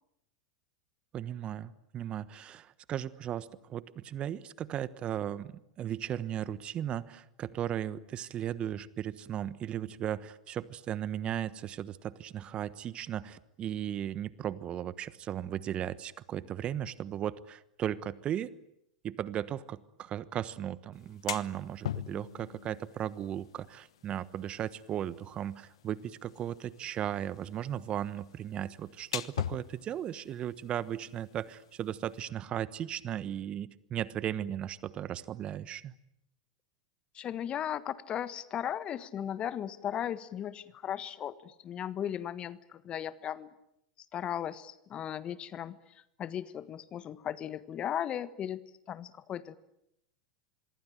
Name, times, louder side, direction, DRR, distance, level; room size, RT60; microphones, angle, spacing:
voice 1, 1.1-18.5 19.0-35.9, right 10 dB, 35° right, 17 dB, 1.2 m, -36 dB
sound 1, 20.9-32.2, left 10 dB, 75° left, 1.1 m, -43 dB
voice 2, 37.1-43.5 44.1-45.8 46.2-48.6 48.9-49.6, left 10 dB, 35° left, 16 dB, 1.5 m, -36 dB
26.0 x 22.5 x 9.2 m, 0.77 s
hypercardioid pair, 95°, 3 cm